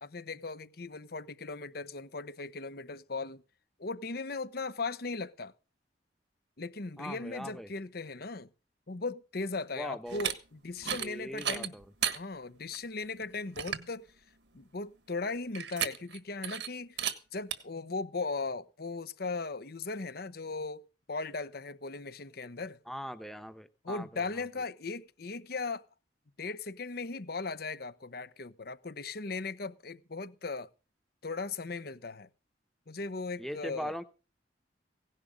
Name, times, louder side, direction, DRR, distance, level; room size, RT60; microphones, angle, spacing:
voice 1, 0.0-3.4 3.8-5.5 6.6-8.5 8.9-11.8 12.1-14.1 14.5-22.8 23.8-25.8 26.4-30.7 31.2-32.3 32.9-34.0, left 3 dB, 55° left, 0.9 m, -38 dB
voice 2, 7.0-7.7 9.7-10.2 11.0-11.8 22.9-24.1 33.4-34.0, equal, ahead, 0.9 m, -40 dB
sound 1, 10.1-10.3 10.8-11.1 11.4-12.2 12.7-12.8 13.2-13.3 13.6-13.9 15.5-16.2 16.4-16.7 17.0-17.1 17.5-17.6, right 9 dB, 75° right, 1.5 m, -33 dB
17.0 x 11.0 x 5.1 m
head